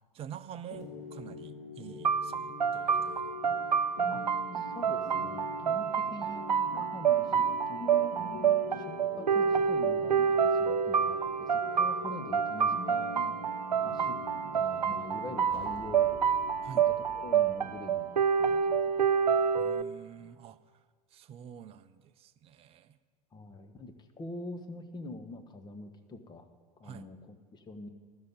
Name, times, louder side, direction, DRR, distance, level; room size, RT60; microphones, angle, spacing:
voice 1, 0.1-3.4 16.6-16.8 19.5-20.6 21.1-23.0 26.8-27.1, right 9 dB, 30° right, 12 dB, 0.6 m, -47 dB
sound 1, 0.7-20.3, left 4 dB, 65° left, 4.3 m, -45 dB
sound 2, 2.0-19.8, right 7 dB, 85° right, 0.4 m, -28 dB
voice 2, 4.5-13.4 13.8-14.2 14.5-16.1 16.7-16.8 17.2-19.0 23.3-26.5 26.8-27.9, left 2 dB, 20° left, 7 dB, 1.1 m, -44 dB
sound 3, 15.5-18.9, left 3 dB, 45° left, 3.1 m, -55 dB
12.5 x 6.6 x 8.9 m, 1.5 s
figure-of-eight pair, 80°, 21 cm